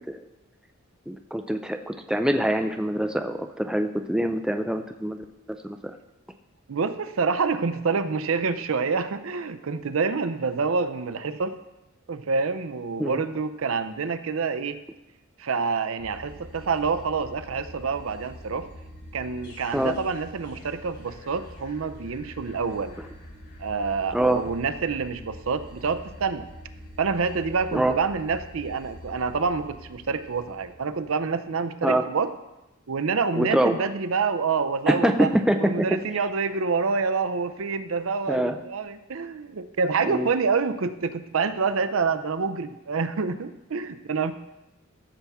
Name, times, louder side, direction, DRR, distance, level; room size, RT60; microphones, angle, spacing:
voice 1, 1.1-5.2 5.6-5.8 13.0-13.2 19.7-20.0 24.1-24.4 27.7-27.9 31.8-32.0 33.4-33.7 34.9-35.9 38.3-38.5 40.1-40.3, right 1 dB, 5° right, 6 dB, 0.4 m, -24 dB
voice 2, 6.7-11.6 12.1-14.8 15.4-18.7 19.1-23.0 23.6-26.5 27.0-32.3 32.9-35.3 35.6-44.3, right 5 dB, 65° right, 11 dB, 0.6 m, -27 dB
sound 1, 16.0-31.4, equal, 55° left, 3.4 m, -45 dB
14.0 x 7.0 x 3.5 m, 0.98 s
head